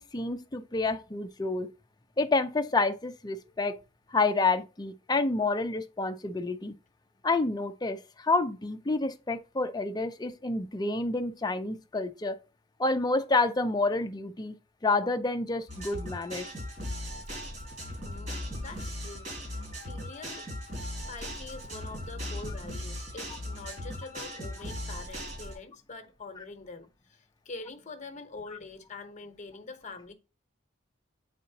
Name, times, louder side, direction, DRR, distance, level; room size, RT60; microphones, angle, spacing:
voice 1, 0.0-1.7 2.2-3.7 4.1-6.7 7.2-12.4 12.8-14.6 14.8-16.5, left 3 dB, 20° left, 0.5 m, -29 dB
sound 1, 15.7-25.5, equal, 45° right, 3.8 m, -38 dB
voice 2, 18.0-20.4 21.1-30.1, left 3 dB, 40° left, 0.9 m, -45 dB
8.5 x 4.2 x 2.8 m
head